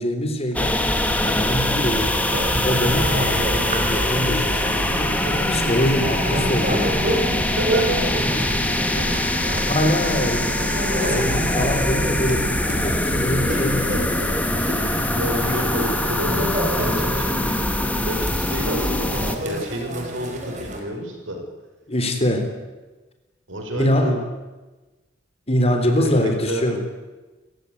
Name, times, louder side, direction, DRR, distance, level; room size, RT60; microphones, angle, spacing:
voice 1, 0.0-2.2 2.6-5.2 5.5-7.1 8.3-8.4 8.9-9.0 9.7-10.6 11.0-14.2 21.9-22.5 23.8-24.2 25.5-26.8, left 1 dB, 30° left, 6 dB, 3.8 m, -24 dB
sound 1, 0.5-19.3, left 1 dB, 10° left, 2.1 m, -23 dB
sound 2, 1.4-17.1, equal, 10° right, 4.8 m, -45 dB
sound 3, 1.6-20.8, right 1 dB, 40° right, 4.6 m, -30 dB
voice 2, 7.6-8.0 13.5-14.3 14.7-17.7 18.0-21.4 23.5-24.2 25.9-26.8, equal, 75° right, 4 dB, 5.8 m, -30 dB
28.0 x 16.0 x 9.8 m, 1.2 s
head